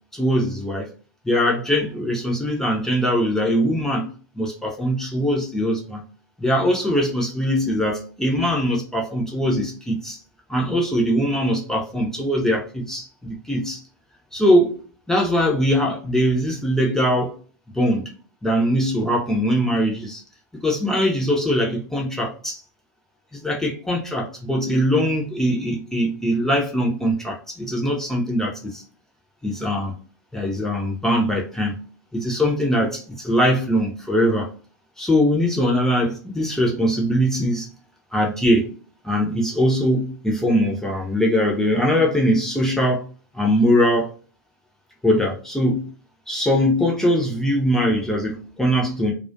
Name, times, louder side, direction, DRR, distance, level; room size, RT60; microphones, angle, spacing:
voice 1, 0.1-0.9 1.2-4.1 4.4-6.0 6.4-10.2 10.5-13.8 14.3-17.4 17.7-18.0 18.4-20.2 20.5-22.6 23.3-28.8 29.4-29.9 30.3-31.8 32.1-34.5 35.0-37.7 38.1-38.7 39.0-43.1 43.3-44.1 45.0-45.9 46.3-49.1, equal, 5° left, 0.5 m, -21 dB
2.3 x 2.2 x 2.5 m
figure-of-eight pair, 95°, 10 cm